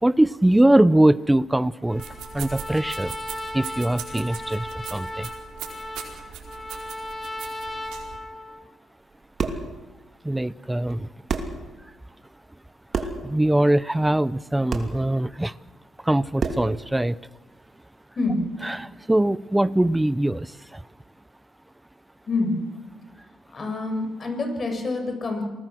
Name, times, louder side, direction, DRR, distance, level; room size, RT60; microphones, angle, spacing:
voice 1, 0.0-2.0 2.3-3.2 3.5-5.3 10.2-11.1 13.0-15.6 16.0-17.2 18.6-20.8, right 1 dB, 10° right, 18 dB, 0.7 m, -22 dB
Trumpet, 1.9-8.7, left 1 dB, 15° left, 3.0 m, -36 dB
sound 1, 1.9-8.2, right 8 dB, 90° right, 4.6 m, -40 dB
sound 2, 9.1-9.7 10.9-11.0 11.3-11.6 12.9-13.3 14.7-15.0 16.4-16.7, right 4 dB, 45° right, 2.8 m, -28 dB
voice 2, 22.3-22.6 23.5-25.4, left 2 dB, 40° left, 4 dB, 7.2 m, -26 dB
28.0 x 20.0 x 6.3 m, 1.2 s
cardioid pair, 90°, 0 cm